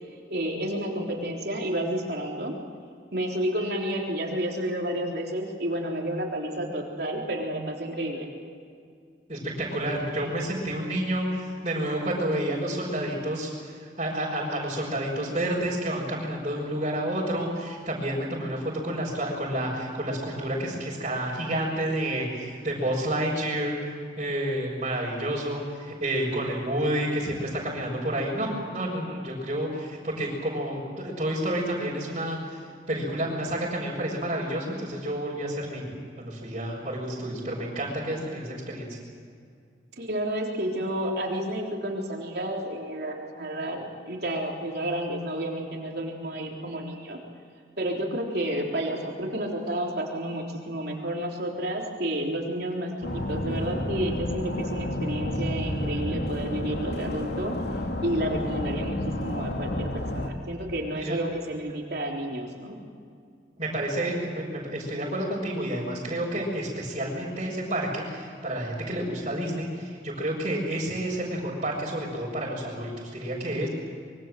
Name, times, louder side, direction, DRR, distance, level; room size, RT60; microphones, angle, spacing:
voice 1, 0.3-2.5 3.1-8.3 40.0-47.2 47.8-57.6 58.0-62.8, right 1 dB, 60° right, -1 dB, 3.8 m, -31 dB
voice 2, 9.3-23.7 24.2-39.0 60.9-61.2 63.6-73.7, right 1 dB, 35° right, -7 dB, 5.9 m, -30 dB
sound 1, 53.0-60.3, left 1 dB, 70° left, 2.4 m, -30 dB
25.5 x 23.5 x 7.7 m, 2.3 s
head